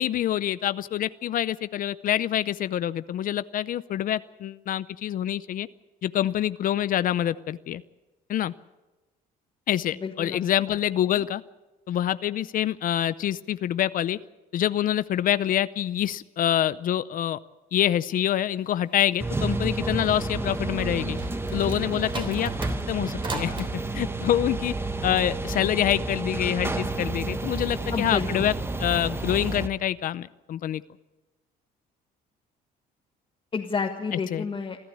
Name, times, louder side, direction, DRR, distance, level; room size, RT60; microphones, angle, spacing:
voice 1, 0.0-5.7 6.0-7.8 8.3-8.5 9.7-11.4 11.9-14.2 14.5-17.4 17.7-21.2 21.5-22.5 22.9-23.7 23.9-24.7 25.0-28.5 28.8-30.8 34.3-34.4, left 11 dB, 55° left, 16 dB, 0.6 m, -26 dB
voice 2, 10.0-10.4 10.7-10.8 27.9-28.5 33.5-34.8, left 5 dB, 30° left, 1 dB, 1.7 m, -30 dB
sound 1, 19.2-29.7, right 2 dB, 15° right, 1.3 m, -30 dB
sound 2, 20.8-23.7, right 3 dB, 30° right, 3.3 m, -37 dB
25.5 x 14.0 x 8.6 m, 1.1 s
cardioid pair, 110°, 17 cm